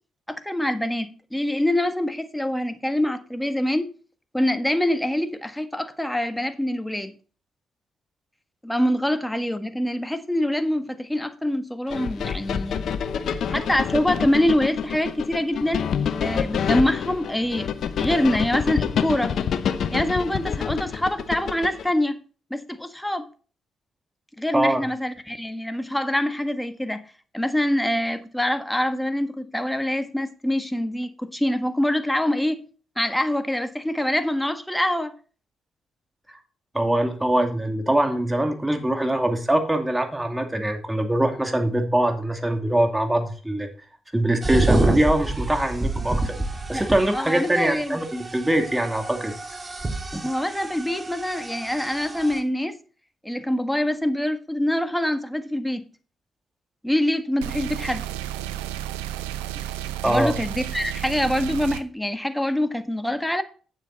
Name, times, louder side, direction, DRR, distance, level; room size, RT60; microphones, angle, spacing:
voice 1, 0.3-3.9 4.3-7.1 8.6-12.9 13.5-15.9 16.2-19.3 19.9-22.2 22.5-23.3 24.4-27.0 27.3-32.6 33.0-35.1 46.7-48.0 50.2-52.7 53.2-55.8 56.8-58.0 60.0-63.4, left 1 dB, 5° left, 1.5 m, -25 dB
sound 1, 11.9-21.9, left 7 dB, 65° left, 0.8 m, -27 dB
voice 2, 36.7-43.7 44.1-46.3 46.7-49.3 50.1-50.2 60.0-60.3, right 1 dB, 15° right, 2.5 m, -23 dB
sound 2, 44.4-52.4, right 2 dB, 30° right, 2.1 m, -28 dB
sound 3, 57.4-61.8, right 13 dB, 90° right, 0.6 m, -32 dB
9.1 x 7.3 x 4.1 m
hypercardioid pair, 45°, 0 cm